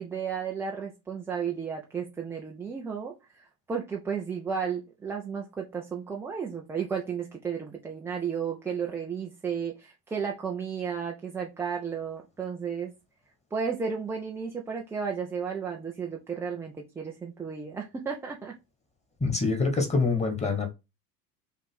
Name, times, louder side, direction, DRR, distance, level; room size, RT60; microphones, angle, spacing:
voice 1, 0.0-12.9 13.5-18.5, right 6 dB, 5° right, 0.3 m, -33 dB
voice 2, 19.2-20.7, left 3 dB, 15° left, 1.6 m, -25 dB
5.6 x 2.5 x 3.7 m
figure-of-eight pair, 75°, 49 cm